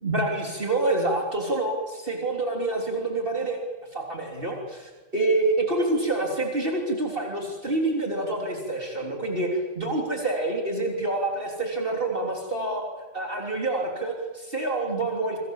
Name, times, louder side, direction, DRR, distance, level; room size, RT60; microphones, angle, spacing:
voice 1, 0.0-3.6 3.9-12.8 13.1-15.4, right 2 dB, 45° right, 0 dB, 3.8 m, -27 dB
28.5 x 25.5 x 7.3 m, 1.2 s
omnidirectional pair, 1.3 m